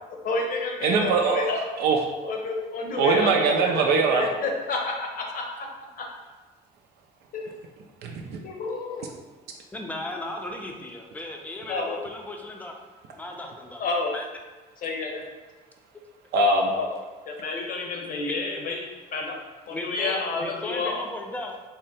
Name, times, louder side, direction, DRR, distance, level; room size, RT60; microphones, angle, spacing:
voice 1, 0.2-1.7 2.2-5.4 6.0-6.1 7.3-7.5 8.4-9.1 11.7-12.0 13.8-14.2 14.8-15.2 16.7-16.9 17.3-18.8 19.1-19.4 19.7-21.0, left 3 dB, 55° left, 1 dB, 0.7 m, -29 dB
voice 2, 0.8-2.0 3.0-4.3 8.0-8.4 16.3-16.7, right 4 dB, 75° right, 1 dB, 0.4 m, -22 dB
voice 3, 9.7-12.7 13.1-13.8 14.1-14.3 18.2-18.4 19.7-21.6, left 1 dB, 10° left, 1 dB, 0.5 m, -36 dB
3.6 x 2.1 x 4.1 m, 1.3 s
cardioid pair, 110°, 17 cm